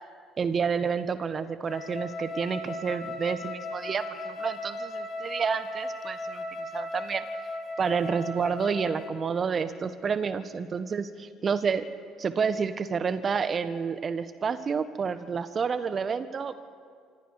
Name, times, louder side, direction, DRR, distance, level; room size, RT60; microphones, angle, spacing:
voice 1, 0.4-6.4 6.7-7.2 7.8-11.9 12.2-16.5, right 6 dB, 40° right, 12 dB, 1.5 m, -29 dB
Wind instrument woodwind instrument, 1.6-9.3, left 2 dB, 45° left, 3.0 m, -37 dB
26.5 x 26.0 x 5.0 m, 2.1 s
hypercardioid pair, 55°, 0 cm